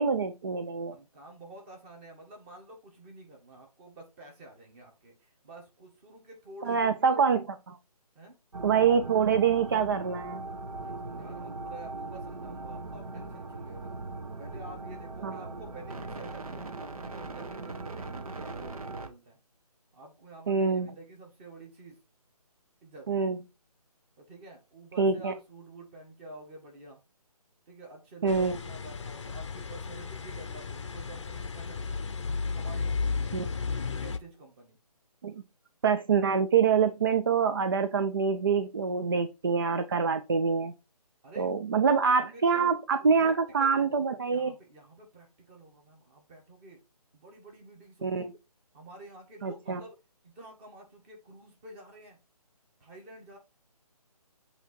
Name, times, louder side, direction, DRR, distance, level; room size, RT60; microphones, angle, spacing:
voice 1, 0.0-0.9 6.6-7.8 8.6-10.4 15.2-15.4 20.5-20.9 23.1-23.4 25.0-25.3 28.2-28.6 33.3-33.5 35.2-35.3 35.8-40.7 41.4-44.5 48.0-48.3 49.4-49.8, right 6 dB, 35° right, 10 dB, 0.4 m, -25 dB
voice 2, 0.9-7.2 8.1-8.4 10.8-14.0 14.4-19.4 19.9-22.0 22.8-23.1 24.2-27.0 27.7-32.1 32.5-33.6 34.0-34.8 41.2-41.5 42.2-42.7 43.0-46.8 47.1-48.3 48.7-49.9 50.2-52.2 52.8-53.4, right 2 dB, 20° right, 1 dB, 1.4 m, -49 dB
sound 1, 8.5-19.1, right 3 dB, 60° right, 1.0 m, -40 dB
sound 2, 28.3-34.2, left 4 dB, 50° left, 0.6 m, -34 dB
7.9 x 2.9 x 4.4 m, 0.28 s
figure-of-eight pair, 150°, 20 cm